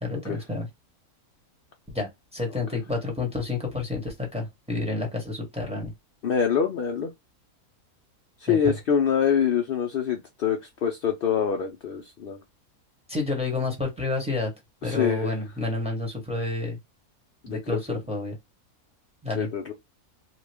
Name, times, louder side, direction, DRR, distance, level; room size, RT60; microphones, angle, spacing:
voice 1, 0.0-0.7 1.9-5.9 8.5-8.7 13.1-14.5 14.8-16.8 17.5-18.3 19.2-19.5, left 2 dB, 5° right, 1.0 m, -29 dB
voice 2, 6.2-7.1 8.4-12.4 14.8-15.3 17.4-17.8 19.4-19.7, left 7 dB, 70° left, 0.5 m, -25 dB
2.9 x 2.3 x 3.3 m
omnidirectional pair, 1.5 m